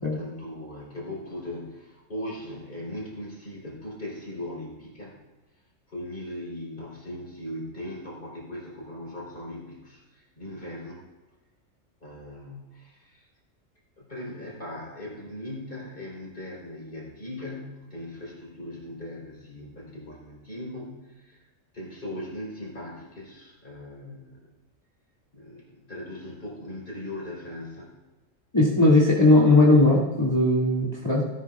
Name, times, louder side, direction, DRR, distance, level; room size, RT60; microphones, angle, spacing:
voice 1, 0.2-5.2 5.9-11.0 12.0-13.2 14.0-21.5 21.7-24.5 25.3-28.0, left 1 dB, 40° left, -4 dB, 4.4 m, -39 dB
voice 2, 28.5-31.2, left 2 dB, 20° left, -8 dB, 2.4 m, -18 dB
18.5 x 12.0 x 2.5 m, 1.1 s
omnidirectional pair, 1.3 m